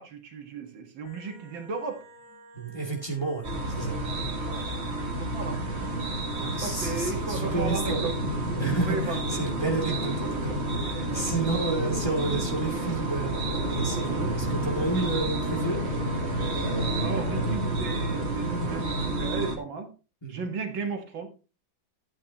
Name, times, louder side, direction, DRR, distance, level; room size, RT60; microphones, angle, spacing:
voice 1, 0.0-2.0 4.4-4.7 5.1-5.6 6.6-8.1 8.9-9.2 10.9-11.5 13.8-14.3 14.9-15.1 17.0-19.9 20.3-21.3, right 4 dB, 75° right, 4 dB, 2.4 m, -35 dB
sound 1, 1.0-19.6, left 2 dB, 55° left, 4.9 m, -49 dB
voice 2, 2.5-4.0 6.4-8.1 8.6-15.8 16.3-16.4 20.2-20.5, right 3 dB, 15° left, 0 dB, 2.4 m, -31 dB
sound 2, 3.4-19.6, right 1 dB, 35° right, 1.9 m, -29 dB
13.0 x 8.6 x 2.9 m, 0.32 s
omnidirectional pair, 2.1 m